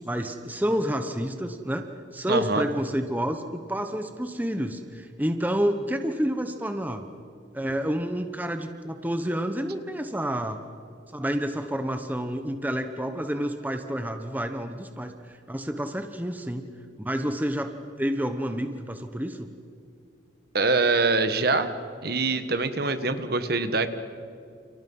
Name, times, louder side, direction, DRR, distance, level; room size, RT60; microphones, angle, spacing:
voice 1, 0.0-1.9 2.1-7.0 7.5-10.6 11.1-16.7 17.0-17.7 18.0-19.5, equal, 10° right, 7 dB, 1.1 m, -29 dB
voice 2, 2.3-2.6 20.5-21.7 22.0-23.9, right 3 dB, 50° right, 10 dB, 1.5 m, -24 dB
29.5 x 29.5 x 5.6 m, 2.4 s
head